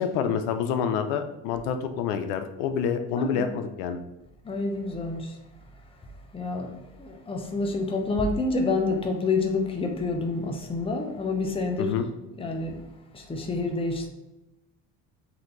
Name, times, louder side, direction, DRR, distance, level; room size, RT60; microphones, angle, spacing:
voice 1, 0.0-4.0 11.8-12.1, left 7 dB, 85° left, 0.6 m, -27 dB
voice 2, 3.2-3.5 4.4-5.4 6.3-11.9 12.4-12.8 13.1-14.1, left 3 dB, 15° left, 0.7 m, -28 dB
4.2 x 2.7 x 3.8 m
supercardioid pair, 100°, 36 cm